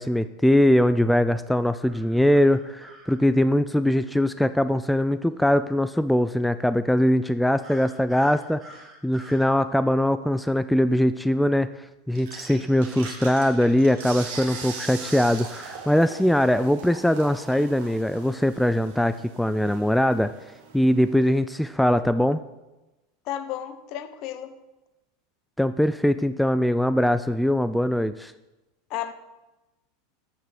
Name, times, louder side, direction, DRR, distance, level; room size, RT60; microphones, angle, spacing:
voice 1, 0.0-8.6 9.0-11.7 12.1-20.3 20.7-22.4 25.6-28.3, left 1 dB, 5° left, 13 dB, 0.3 m, -21 dB
sound 1, 1.8-3.2 7.6-9.5 14.0-15.9, right 1 dB, 20° right, 2.4 m, -48 dB
sound 2, 12.2-21.4, right 5 dB, 65° right, 2.1 m, -41 dB
voice 2, 23.2-24.6 28.9-29.1, left 11 dB, 50° left, 11 dB, 0.8 m, -32 dB
8.1 x 6.0 x 6.6 m, 1.0 s
hypercardioid pair, 85°, 0 cm